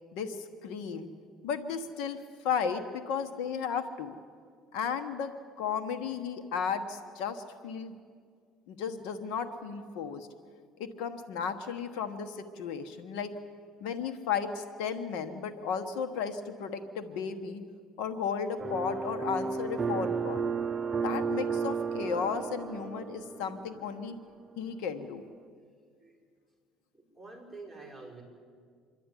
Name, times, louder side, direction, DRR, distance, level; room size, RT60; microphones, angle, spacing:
voice 1, 0.1-1.1 1.4-4.2 4.7-5.3 5.6-8.0 8.7-10.3 10.8-13.3 13.8-17.6 18.0-20.5 21.0-24.2 24.6-25.2, left 6 dB, 85° left, 8 dB, 1.2 m, -34 dB
sound 1, 18.6-23.8, right 5 dB, 20° right, 0.7 m, -33 dB
voice 2, 26.9-28.2, right 3 dB, 5° left, -4 dB, 5.4 m, -47 dB
27.0 x 12.0 x 9.9 m, 2.1 s
cardioid pair, 155°, 0 cm